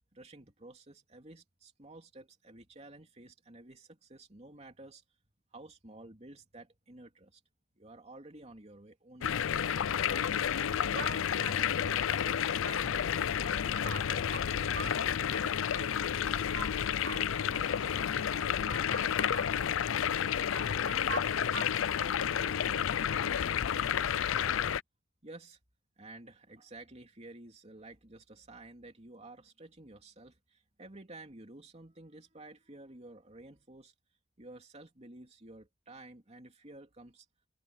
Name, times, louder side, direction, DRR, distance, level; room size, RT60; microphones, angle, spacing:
voice 1, 0.1-5.0 5.5-7.4 7.7-9.4 25.2-25.6 26.0-33.9 34.4-37.3, right 2 dB, 35° right, 2.9 m, -52 dB
sound 1, 9.2-24.8, left 8 dB, 80° left, 0.5 m, -31 dB
voice 2, 10.9-20.0 20.4-22.8, right 5 dB, 80° right, 3.0 m, -46 dB
head